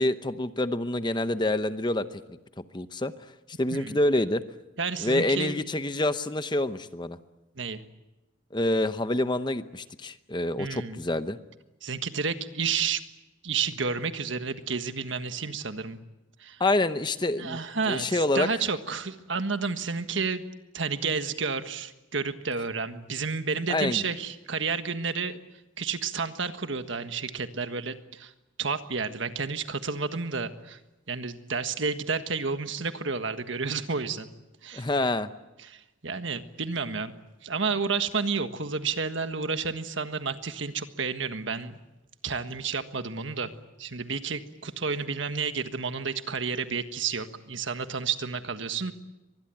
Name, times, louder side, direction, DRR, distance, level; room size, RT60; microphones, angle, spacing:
voice 1, 0.0-2.2 2.6-3.1 3.6-4.4 5.0-7.2 8.5-11.4 16.6-17.6 17.9-18.5 23.7-24.0 34.7-35.3, left 2 dB, 20° left, 11 dB, 0.8 m, -27 dB
voice 2, 4.8-5.6 7.6-7.8 10.6-11.0 11.8-13.0 13.4-16.0 16.4-16.6 17.4-20.4 20.7-25.4 25.8-28.3 28.6-30.8 31.1-34.3 34.6-34.9 35.6-37.1 37.4-41.8 42.2-43.5 43.8-48.9, right 5 dB, 65° right, 9 dB, 1.5 m, -31 dB
24.5 x 20.5 x 9.2 m, 1.0 s
head